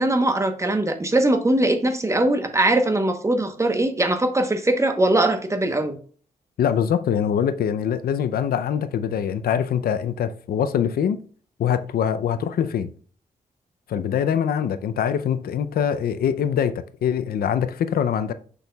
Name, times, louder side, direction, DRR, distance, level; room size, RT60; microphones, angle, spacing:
voice 1, 0.0-6.0, right 1 dB, 20° right, 0.9 m, -21 dB
voice 2, 6.6-11.2 11.6-12.9 13.9-18.3, left 8 dB, 90° left, 0.5 m, -23 dB
6.7 x 6.2 x 2.3 m
cardioid pair, 100°, 15 cm